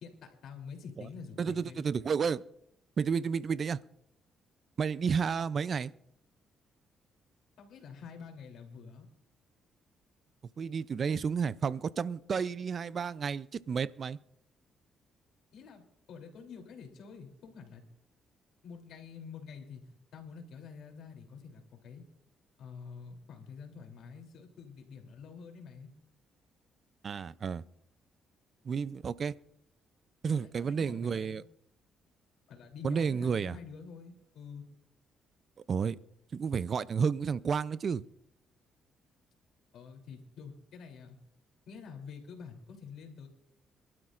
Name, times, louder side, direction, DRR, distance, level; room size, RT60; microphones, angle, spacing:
voice 1, 0.0-1.8 7.6-9.1 15.5-17.8 18.6-22.0 22.6-25.9 30.4-31.4 32.5-34.7 39.7-41.2 41.7-43.3, left 5 dB, 75° left, 3 dB, 3.1 m, -48 dB
voice 2, 1.4-2.4 3.0-3.8 4.8-5.9 10.6-14.2 27.0-27.6 28.6-29.4 30.2-31.4 32.8-33.6 35.7-36.0 36.3-38.0, right 6 dB, 50° right, 18 dB, 0.4 m, -31 dB
26.0 x 12.0 x 2.5 m, 0.76 s
cardioid pair, 90°, 0 cm